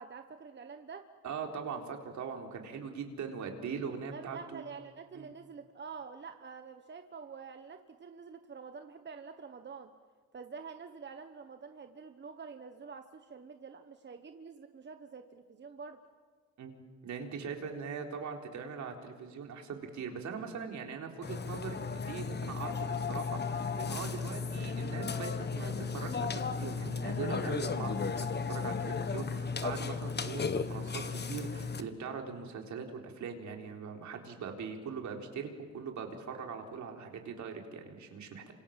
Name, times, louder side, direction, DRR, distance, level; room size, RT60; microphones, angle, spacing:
voice 1, 0.0-1.1 4.1-9.9 10.3-16.0, right 5 dB, 35° right, 8 dB, 1.3 m, -47 dB
voice 2, 1.2-4.6 5.1-5.3 16.6-16.7 17.0-38.5, right 6 dB, 70° right, 3 dB, 3.9 m, -41 dB
Burping eructation, 21.2-31.8, left 5 dB, 35° left, 1.5 m, -35 dB
28.0 x 26.0 x 7.6 m, 1.6 s
cardioid pair, 90°, 30 cm